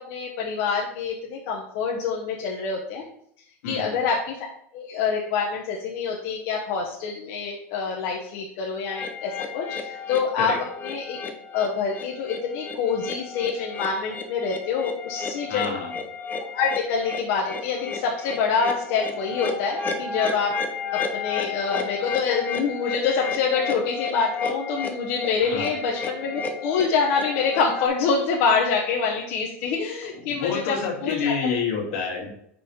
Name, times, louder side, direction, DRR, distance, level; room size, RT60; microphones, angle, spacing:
voice 1, 0.1-3.0 3.7-4.4 4.7-10.5 10.8-11.2 11.5-15.7 16.5-20.5 21.1-31.5, left 5 dB, 60° left, -2 dB, 1.0 m, -26 dB
voice 2, 3.6-4.0 10.4-10.6 15.5-15.9 25.4-25.7 30.3-32.3, left 5 dB, 80° left, 0 dB, 1.9 m, -28 dB
sound 1, 8.9-27.9, left 5 dB, 25° left, 0.8 m, -33 dB
5.5 x 4.1 x 4.2 m, 0.70 s
supercardioid pair, 125°, 7 cm